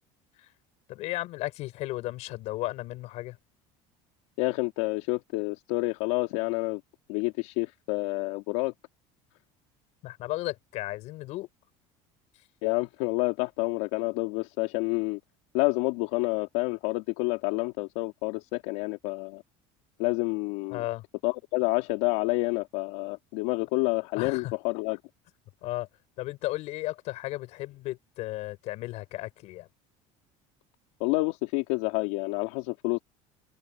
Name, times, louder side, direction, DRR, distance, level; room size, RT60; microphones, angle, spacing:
voice 1, 0.9-3.4 10.0-11.5 20.7-21.0 24.2-24.5 25.6-25.9 26.2-29.7, left 18 dB, 50° left, 5.8 m, -34 dB
voice 2, 4.4-6.8 7.1-8.7 12.6-15.2 15.5-19.4 20.0-20.8 21.2-25.0 31.0-33.0, left 23 dB, 85° left, 3.2 m, -28 dB
open air
cardioid pair, 175°, 14 cm